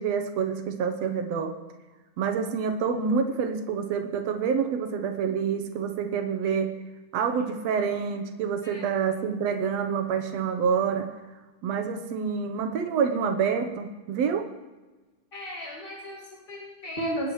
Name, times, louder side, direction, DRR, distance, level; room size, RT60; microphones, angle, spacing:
voice 1, 0.0-1.5 2.2-6.7 7.1-11.1 11.6-14.5, right 6 dB, 65° right, 6 dB, 1.7 m, -27 dB
voice 2, 15.3-17.3, equal, 20° left, -6 dB, 1.7 m, -34 dB
25.0 x 10.0 x 3.2 m, 1.2 s
omnidirectional pair, 3.9 m